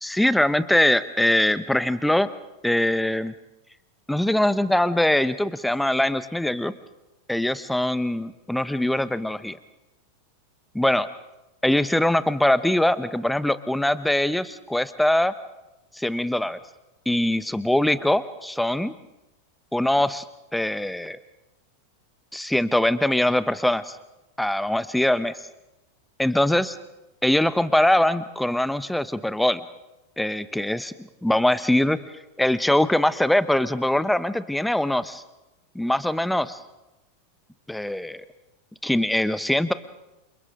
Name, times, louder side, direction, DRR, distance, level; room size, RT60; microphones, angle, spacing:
voice 1, 0.0-2.3 2.6-3.3 4.1-6.7 7.3-9.6 10.7-11.1 11.6-15.3 15.9-16.6 17.1-18.9 19.7-20.2 20.5-21.2 22.3-23.9 24.4-25.4 26.2-26.8 27.2-29.6 30.2-35.2 35.7-36.6 37.7-38.2 38.8-39.7, left 1 dB, 5° left, 15 dB, 1.0 m, -22 dB
29.5 x 27.0 x 3.8 m, 0.99 s
figure-of-eight pair, 90°, 0 cm